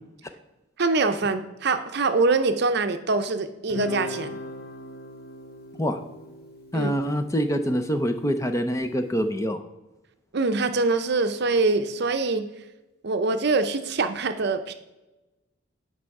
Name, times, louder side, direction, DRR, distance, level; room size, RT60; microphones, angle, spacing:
voice 1, 0.8-4.4 6.7-6.9 10.3-12.5 13.0-14.7, right 3 dB, 50° right, 8 dB, 0.6 m, -24 dB
Guitar, 3.7-8.3, left 2 dB, 50° left, 1.1 m, -39 dB
voice 2, 6.7-9.6, equal, 15° left, 6 dB, 0.5 m, -25 dB
8.7 x 5.4 x 4.7 m, 1.0 s
head